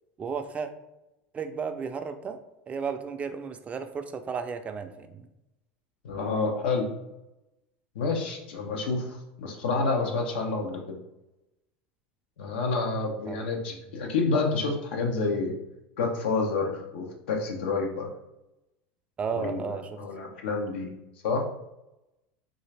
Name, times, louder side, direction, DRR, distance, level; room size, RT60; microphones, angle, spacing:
voice 1, 0.2-0.7 1.3-2.4 2.7-5.3 13.3-13.5 13.7-13.8 19.2-20.0, right 6 dB, 25° right, 8 dB, 0.4 m, -33 dB
voice 2, 6.0-6.9 7.9-11.0 12.4-15.5 16.0-18.1 19.3-19.7 20.0-20.9 21.2-21.4, left 4 dB, 85° left, 2 dB, 0.8 m, -28 dB
3.9 x 2.5 x 3.2 m, 0.93 s
supercardioid pair, 125°, 6 cm